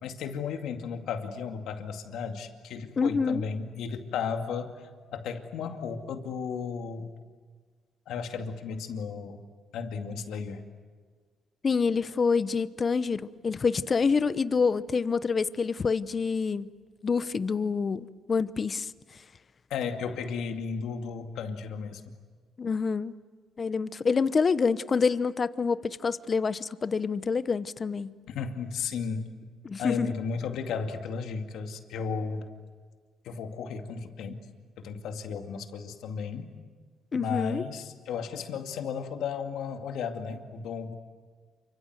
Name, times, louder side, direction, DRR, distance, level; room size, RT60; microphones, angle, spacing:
voice 1, 0.0-7.1 8.1-9.4 9.7-10.6 19.7-22.1 28.3-29.3 29.8-32.5 33.2-34.4 34.8-36.6 37.1-40.9, left 6 dB, 80° left, 5 dB, 2.3 m, -34 dB
voice 2, 3.0-3.4 11.6-16.7 17.0-18.9 22.6-23.2 23.6-28.2 29.6-30.1 37.1-37.6, left 5 dB, 40° left, 14 dB, 0.9 m, -27 dB
28.5 x 25.5 x 8.0 m, 1.5 s
cardioid pair, 90°, 0 cm